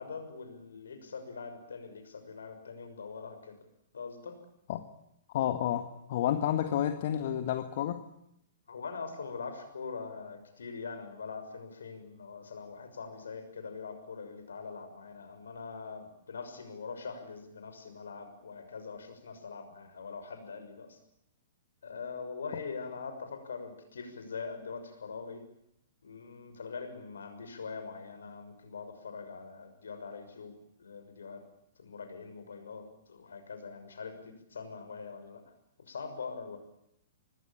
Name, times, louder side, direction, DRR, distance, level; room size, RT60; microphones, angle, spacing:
voice 1, 0.0-3.6 3.9-4.4 8.7-21.0 21.8-25.4 26.0-31.5 31.8-35.4 35.8-36.6, left 5 dB, 70° left, 8 dB, 6.2 m, -43 dB
voice 2, 5.3-8.1, left 11 dB, 50° left, 9 dB, 1.7 m, -30 dB
25.5 x 20.5 x 8.8 m, 0.79 s
figure-of-eight pair, 110°, 0 cm